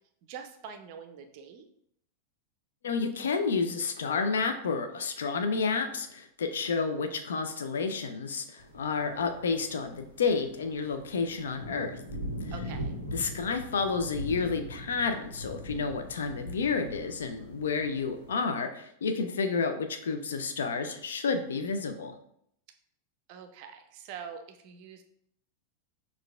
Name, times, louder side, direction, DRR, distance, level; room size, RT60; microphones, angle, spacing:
voice 1, 0.3-1.7 12.5-12.9 23.3-25.0, right 7 dB, 45° right, 6 dB, 0.4 m, -44 dB
voice 2, 2.8-12.0 13.1-22.1, left 4 dB, 65° left, 6 dB, 0.4 m, -30 dB
sound 1, 8.6-18.4, equal, 85° left, 1.1 m, -41 dB
6.3 x 2.4 x 2.3 m, 0.73 s
figure-of-eight pair, 90°, 0 cm